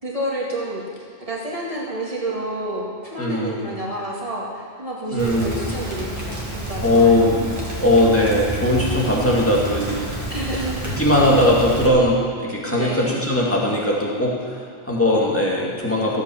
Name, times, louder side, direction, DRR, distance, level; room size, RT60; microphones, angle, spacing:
voice 1, 0.0-7.3 10.3-10.8 12.7-13.1, right 1 dB, 30° right, -4 dB, 2.2 m, -29 dB
voice 2, 3.2-3.7 5.1-5.7 6.8-7.5 7.8-10.2 10.5-16.2, left 1 dB, 10° left, -4 dB, 2.3 m, -19 dB
Rain, 5.2-11.9, right 1 dB, 15° right, 2.2 m, -29 dB
14.5 x 8.2 x 7.2 m, 2.2 s
omnidirectional pair, 1.1 m